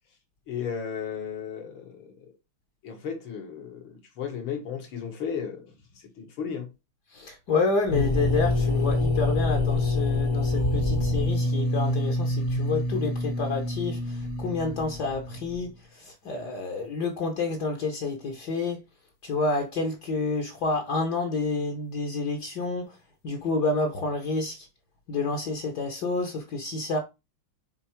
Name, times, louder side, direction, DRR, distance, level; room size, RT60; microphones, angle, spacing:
voice 1, 0.5-2.3 2.8-5.7 6.2-6.7, left 7 dB, 75° left, 2.5 m, -34 dB
voice 2, 7.1-15.7 16.0-18.8 19.2-22.9 23.2-24.7 25.1-27.0, left 3 dB, 55° left, 1.5 m, -29 dB
sound 1, 7.9-15.6, left 2 dB, 40° left, 1.2 m, -26 dB
6.8 x 4.2 x 4.5 m
omnidirectional pair, 2.3 m